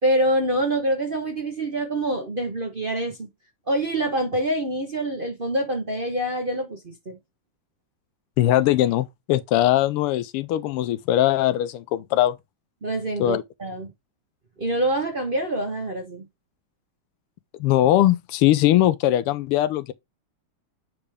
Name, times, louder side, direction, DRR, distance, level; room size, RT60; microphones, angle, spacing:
voice 1, 0.0-3.3 3.7-7.2 12.8-13.9 14.6-16.2, right 1 dB, 40° right, 0.8 m, -25 dB
voice 2, 8.4-12.4 13.2-13.4 17.6-19.9, left 13 dB, 85° left, 1.5 m, -20 dB
6.9 x 5.1 x 3.4 m
omnidirectional pair, 2.4 m